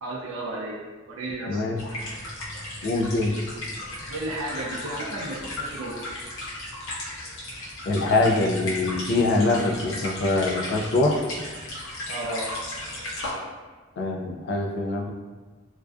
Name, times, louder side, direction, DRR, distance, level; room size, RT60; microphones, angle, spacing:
voice 1, 0.0-1.6 4.1-5.9 12.1-12.5, right 1 dB, 80° right, -2 dB, 0.4 m, -33 dB
voice 2, 1.5-1.8 2.8-3.3 7.9-11.2 14.0-15.1, left 2 dB, 55° left, 2 dB, 0.3 m, -24 dB
sound 1, 1.8-13.3, left 1 dB, 75° left, 0.7 m, -35 dB
2.4 x 2.3 x 2.3 m, 1.3 s
head